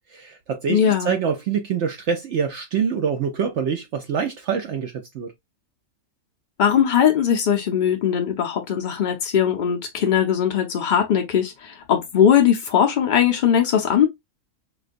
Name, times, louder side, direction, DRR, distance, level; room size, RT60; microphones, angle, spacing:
voice 1, 0.1-5.3, right 6 dB, 65° right, 0.8 m, -25 dB
voice 2, 0.7-1.1 6.6-14.1, left 8 dB, 75° left, 0.4 m, -20 dB
4.3 x 2.2 x 2.5 m
omnidirectional pair, 1.6 m